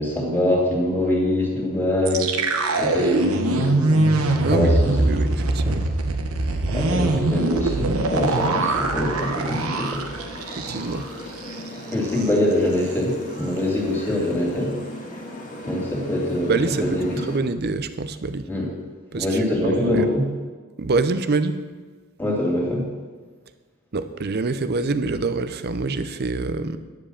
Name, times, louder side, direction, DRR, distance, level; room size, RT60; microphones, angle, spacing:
voice 1, 0.0-4.0 4.4-5.0 5.6-5.7 6.7-10.0 11.9-14.7 15.6-16.6 16.8-17.2 18.5-18.7 19.1-20.3 22.2-22.9, left 1 dB, 10° left, -3 dB, 2.7 m, -24 dB
sound 1, 2.0-11.1 11.4-11.5 11.9-12.3, right 2 dB, 80° right, 1.0 m, -22 dB
voice 2, 4.4-5.9 7.0-7.1 10.6-11.0 16.5-18.5 19.1-20.1 20.8-21.6 23.9-26.8, right 3 dB, 50° right, 11 dB, 0.6 m, -26 dB
sound 2, 8.2-17.4, left 1 dB, 35° left, 1.9 m, -38 dB
10.5 x 7.6 x 6.5 m, 1.4 s
head